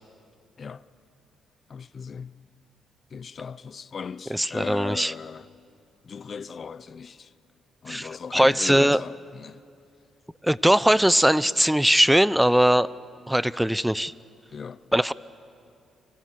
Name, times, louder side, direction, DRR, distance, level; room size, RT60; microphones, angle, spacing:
voice 1, 1.7-2.4 3.1-5.5 6.0-7.3 7.8-9.6 14.5-14.9, left 6 dB, 45° left, 0.8 m, -38 dB
voice 2, 4.3-5.1 7.9-9.0 10.4-12.9 13.3-14.1 14.9-15.1, equal, 5° right, 0.6 m, -20 dB
30.0 x 25.5 x 7.7 m
cardioid pair, 90°, 0 cm